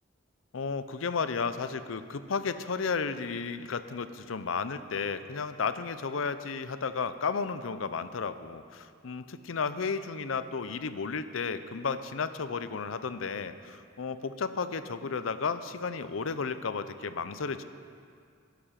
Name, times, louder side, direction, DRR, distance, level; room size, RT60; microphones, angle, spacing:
voice 1, 0.5-17.6, left 5 dB, 90° left, 12 dB, 0.6 m, -33 dB
12.0 x 11.5 x 5.8 m, 2.2 s
head